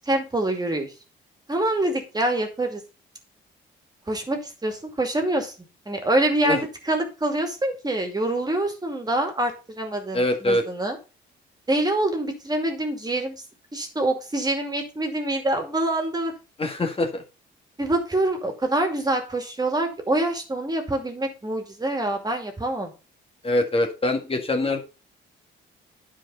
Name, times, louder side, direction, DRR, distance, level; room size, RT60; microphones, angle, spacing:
voice 1, 0.1-0.9 1.5-2.8 4.1-5.5 5.9-11.0 11.7-13.4 13.7-16.3 17.8-22.9, right 1 dB, 20° right, 4 dB, 2.4 m, -25 dB
voice 2, 10.1-10.6 16.6-17.2 23.4-24.8, left 1 dB, 30° left, 3 dB, 1.8 m, -23 dB
9.4 x 4.8 x 5.5 m, 0.32 s
cardioid pair, 90°, 20 cm